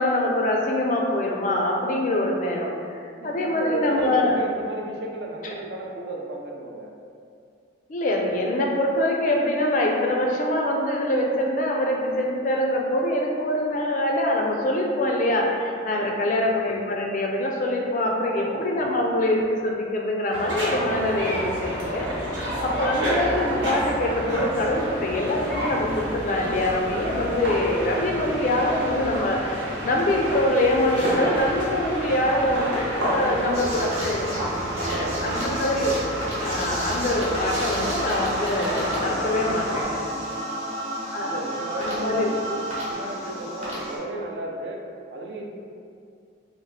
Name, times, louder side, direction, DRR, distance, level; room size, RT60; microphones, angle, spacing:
voice 1, 0.0-4.3 7.9-34.4 34.8-36.0 36.4-40.0 41.1-41.4 41.7-42.3, left 1 dB, 45° left, 0 dB, 0.3 m, -24 dB
voice 2, 3.2-6.9 15.9-16.3 18.3-19.0 22.3-22.6 33.1-33.9 34.7-35.5 40.3-40.6 41.2-44.8 45.1-45.5, right 2 dB, 65° right, 0 dB, 0.4 m, -34 dB
sound 1, 20.3-39.8, equal, 85° right, 0.8 m, -30 dB
sound 2, 33.5-44.0, right 1 dB, 35° right, 0.8 m, -31 dB
2.8 x 2.1 x 3.1 m, 2.3 s
head